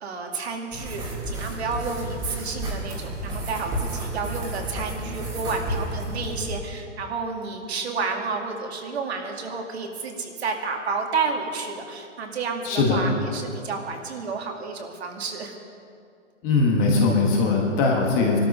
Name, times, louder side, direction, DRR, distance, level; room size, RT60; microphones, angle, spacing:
voice 1, 0.0-15.5, right 4 dB, 60° right, 2 dB, 2.3 m, -31 dB
sound 1, 0.7-6.5, right 1 dB, 10° right, 2.0 m, -31 dB
voice 2, 12.6-13.1 16.4-18.4, left 3 dB, 15° left, 0 dB, 1.2 m, -20 dB
20.0 x 13.0 x 5.3 m, 2.4 s
hypercardioid pair, 175°, 37 cm